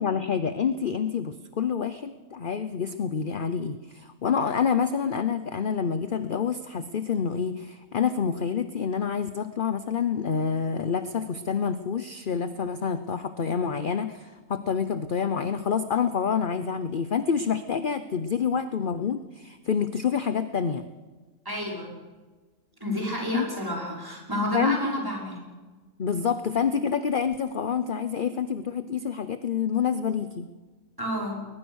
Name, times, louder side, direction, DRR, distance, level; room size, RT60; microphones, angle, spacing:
voice 1, 0.0-20.9 23.3-23.4 24.5-25.0 26.0-30.5, left 7 dB, 45° left, 11 dB, 0.9 m, -27 dB
voice 2, 21.4-21.9 22.8-25.4 31.0-31.5, equal, 15° right, -2 dB, 5.7 m, -30 dB
21.5 x 20.0 x 6.4 m, 1.3 s
omnidirectional pair, 1.5 m